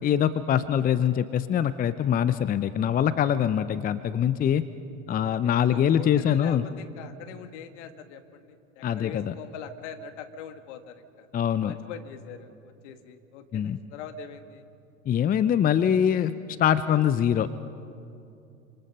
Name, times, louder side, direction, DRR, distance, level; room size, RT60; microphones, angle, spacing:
voice 1, 0.0-4.6 5.1-6.6 8.8-9.3 11.3-11.7 13.5-13.8 15.1-16.3 16.6-17.5, left 9 dB, 20° left, 14 dB, 0.7 m, -23 dB
voice 2, 5.4-11.3 11.7-14.6, left 7 dB, 60° left, 8 dB, 2.0 m, -42 dB
26.5 x 26.0 x 5.5 m, 2.6 s
hypercardioid pair, 85°, 40 cm